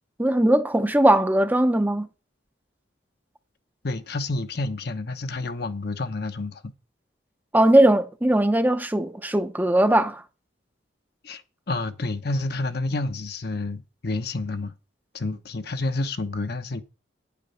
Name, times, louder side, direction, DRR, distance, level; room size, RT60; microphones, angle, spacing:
voice 1, 0.2-2.1 7.5-10.2, right 1 dB, 10° right, 0.7 m, -19 dB
voice 2, 3.8-6.7 11.2-11.4 11.7-14.7 15.1-16.8, left 2 dB, 55° left, 1.0 m, -29 dB
9.6 x 8.5 x 5.5 m
head